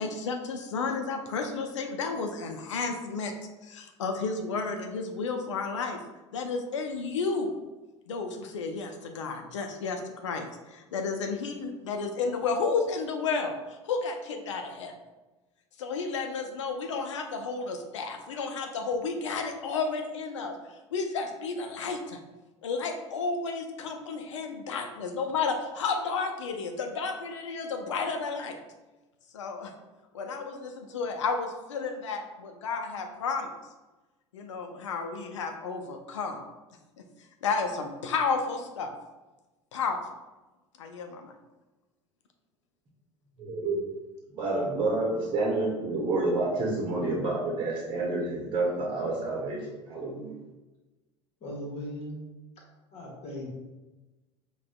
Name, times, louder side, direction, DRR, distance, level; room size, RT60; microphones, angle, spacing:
voice 1, 0.0-3.3 3.6-6.0 6.3-7.5 8.1-13.6 13.8-14.9 15.8-22.2 22.6-28.6 29.3-29.7 30.1-33.5 34.3-36.4 37.0-37.1 37.4-38.9 39.7-40.0 40.8-41.3, left 4 dB, 80° left, 4 dB, 0.4 m, -32 dB
voice 2, 43.4-43.8 44.3-50.3, right 2 dB, 35° right, -3 dB, 0.9 m, -29 dB
voice 3, 51.4-52.2 52.9-53.5, equal, 45° left, -2 dB, 1.1 m, -38 dB
4.8 x 2.2 x 2.2 m, 1.1 s
figure-of-eight pair, 70°, 15 cm